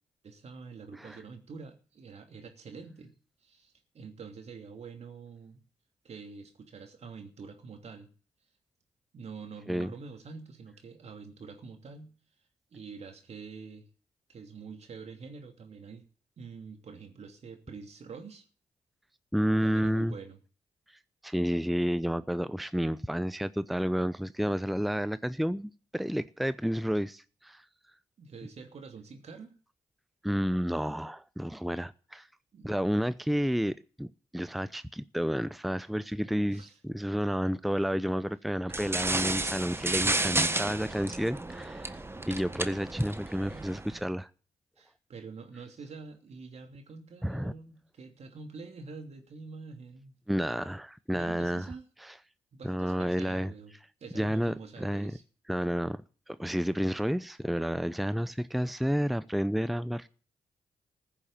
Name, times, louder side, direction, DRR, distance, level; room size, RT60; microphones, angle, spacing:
voice 1, 0.2-3.1 3.4-5.6 6.0-8.1 9.1-12.1 12.7-13.9 14.3-16.1 16.4-18.4 19.6-20.4 28.2-29.5 32.5-32.7 36.5-36.7 44.8-50.2 51.1-51.8 52.5-53.7 54.0-55.2, right 5 dB, 60° right, 2.9 m, -46 dB
voice 2, 19.3-20.1 21.2-27.6 30.2-32.3 32.6-34.1 34.3-36.6 36.9-42.0 42.3-44.3 47.2-47.5 50.3-51.7 52.0-52.2 52.6-53.5 54.1-55.1 55.5-56.0 56.3-60.1, equal, ahead, 0.7 m, -30 dB
sound 1, 38.7-44.0, right 2 dB, 20° right, 1.5 m, -32 dB
15.0 x 7.2 x 8.9 m
supercardioid pair, 45°, 12 cm